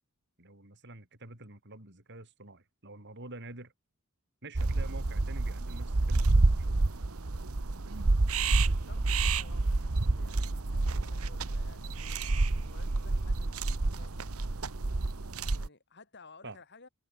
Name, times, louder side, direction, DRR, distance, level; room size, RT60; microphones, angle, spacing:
voice 1, 0.4-3.7 4.4-6.8 16.4-16.6, right 2 dB, 55° right, 5.6 m, -47 dB
sound 1, 4.6-15.7, right 2 dB, 85° right, 1.2 m, -29 dB
voice 2, 8.5-14.3 15.5-16.9, left 3 dB, 55° left, 8.0 m, -56 dB
head